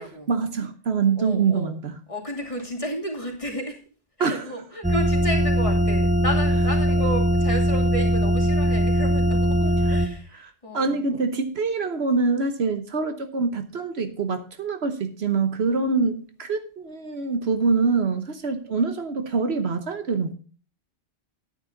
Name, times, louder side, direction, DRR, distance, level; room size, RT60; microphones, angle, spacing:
voice 1, 0.0-2.0 4.2-4.5 9.6-9.7 10.7-20.3, right 4 dB, 65° right, 8 dB, 1.3 m, -25 dB
voice 2, 1.2-1.7 2.1-3.8 4.2-11.3, equal, 30° left, 1 dB, 2.7 m, -32 dB
Shepard Note F, 4.8-10.1, equal, 5° right, 1.0 m, -21 dB
10.5 x 9.5 x 3.9 m, 0.37 s
omnidirectional pair, 1.1 m